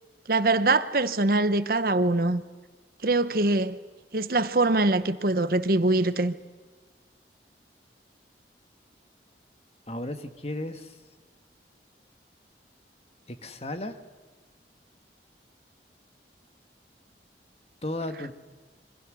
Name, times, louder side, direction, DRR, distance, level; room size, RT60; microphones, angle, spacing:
voice 1, 0.3-2.4 3.0-3.8 4.1-6.3, right 2 dB, 55° right, 1.0 m, -23 dB
voice 2, 9.9-11.0 13.3-14.0 17.8-18.3, left 1 dB, 35° left, 1.6 m, -34 dB
27.5 x 24.5 x 6.4 m
head